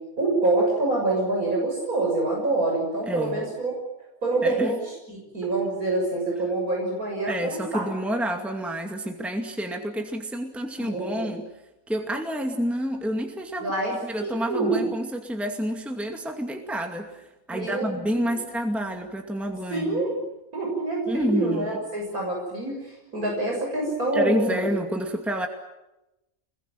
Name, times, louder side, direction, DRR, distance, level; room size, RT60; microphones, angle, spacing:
voice 1, 0.2-3.7 4.2-4.8 5.1-7.9 10.8-11.3 13.6-14.9 17.5-18.4 19.7-20.2 20.5-24.6, right 2 dB, 85° right, -1 dB, 7.2 m, -26 dB
voice 2, 3.1-3.4 4.4-4.7 5.4-5.5 7.3-11.5 11.9-20.0 21.1-21.8 24.1-25.5, equal, ahead, 3 dB, 2.3 m, -29 dB
27.0 x 22.0 x 9.2 m, 0.95 s
omnidirectional pair, 1.5 m